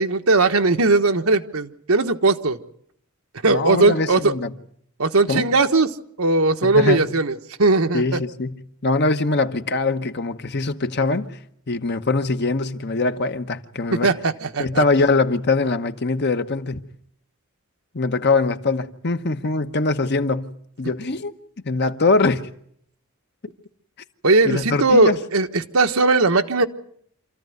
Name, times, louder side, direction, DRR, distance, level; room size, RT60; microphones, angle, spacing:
voice 1, 0.0-2.6 3.4-4.3 5.0-5.9 6.2-8.2 13.9-14.8 24.2-26.7, right 3 dB, 85° right, 1.3 m, -18 dB
voice 2, 3.5-4.5 5.3-5.5 6.6-7.1 7.9-11.4 11.7-14.1 14.6-16.8 17.9-21.3 21.6-22.5 24.4-25.2, left 3 dB, 50° left, 1.1 m, -22 dB
27.0 x 14.5 x 9.4 m
head